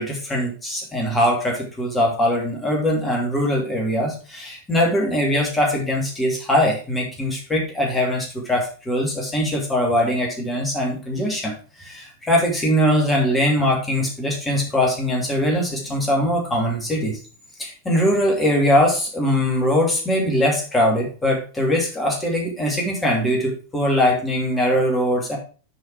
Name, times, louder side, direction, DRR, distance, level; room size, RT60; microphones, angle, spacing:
voice 1, 0.0-17.2 17.6-25.4, equal, 10° left, -1 dB, 2.8 m, -21 dB
8.1 x 4.9 x 4.8 m, 0.36 s
figure-of-eight pair, 90°, 0 cm